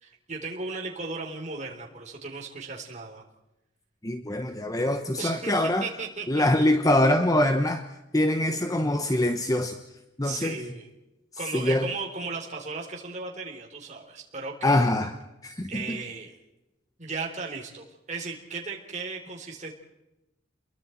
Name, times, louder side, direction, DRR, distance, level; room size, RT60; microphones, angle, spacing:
voice 1, 0.0-3.2 5.2-5.5 5.8-6.5 10.2-10.9 11.4-14.8 15.7-16.4 17.0-19.7, right 4 dB, 40° right, 0 dB, 3.6 m, -36 dB
voice 2, 4.0-5.9 6.3-7.8 8.1-9.8 10.2-10.6 11.5-11.9 14.6-15.1 15.4-16.0, left 1 dB, 20° left, 7 dB, 1.1 m, -24 dB
30.0 x 23.0 x 4.5 m, 0.96 s
head